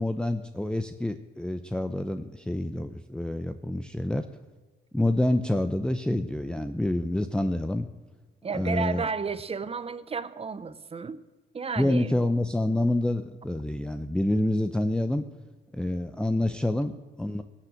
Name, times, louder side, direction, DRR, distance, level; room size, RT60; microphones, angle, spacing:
voice 1, 0.0-4.2 4.9-7.8 8.5-9.1 11.8-15.2 15.7-17.4, left 1 dB, 5° left, 8 dB, 0.6 m, -27 dB
voice 2, 8.4-11.2 11.5-12.2, right 5 dB, 30° right, 13 dB, 0.8 m, -32 dB
20.0 x 7.4 x 6.5 m, 1.3 s
cardioid pair, 90°, 20 cm